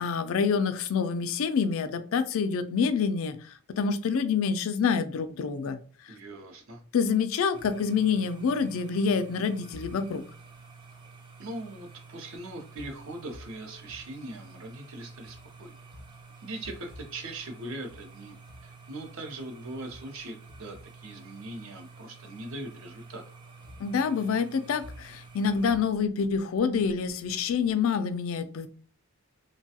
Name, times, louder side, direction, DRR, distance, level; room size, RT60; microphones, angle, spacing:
voice 1, 0.0-3.4 3.8-5.8 6.9-10.2 23.8-28.7, left 6 dB, 65° left, 11 dB, 0.3 m, -27 dB
voice 2, 6.1-6.8 11.4-15.8 16.4-18.3 18.6-23.2, right 2 dB, 60° right, 4 dB, 0.6 m, -41 dB
sound 1, 7.5-25.8, right 3 dB, 20° right, 0.4 m, -49 dB
3.1 x 2.2 x 2.7 m, 0.41 s
head